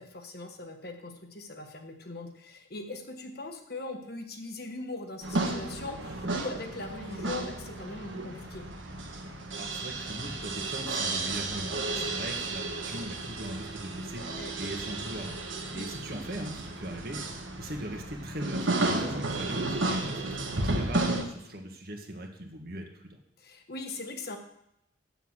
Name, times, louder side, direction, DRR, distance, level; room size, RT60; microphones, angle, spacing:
voice 1, 0.0-8.7 11.9-12.1 14.3-14.5 15.7-15.9 20.7-20.8 23.4-24.4, left 2 dB, 50° left, 5 dB, 1.4 m, -40 dB
sound 1, 5.2-21.2, right 2 dB, 75° right, 1.5 m, -33 dB
voice 2, 9.6-15.4 15.7-17.2 17.6-23.2, right 1 dB, 50° right, 2 dB, 1.7 m, -40 dB
8.1 x 7.2 x 7.4 m, 0.81 s
head